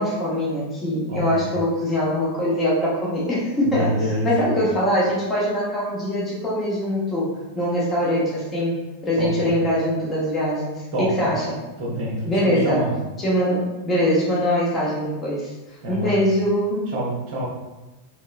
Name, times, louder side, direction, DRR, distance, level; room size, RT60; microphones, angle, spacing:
voice 1, 0.0-11.6 12.3-12.9 13.2-15.5 15.9-16.9, equal, 20° left, -6 dB, 0.9 m, -23 dB
voice 2, 1.1-1.5 3.6-4.5 9.2-9.5 10.9-11.3 11.8-12.9 15.8-16.3 16.9-17.5, right 1 dB, 45° right, -5 dB, 0.7 m, -26 dB
3.1 x 2.9 x 2.4 m, 1.1 s
figure-of-eight pair, 90°, 0 cm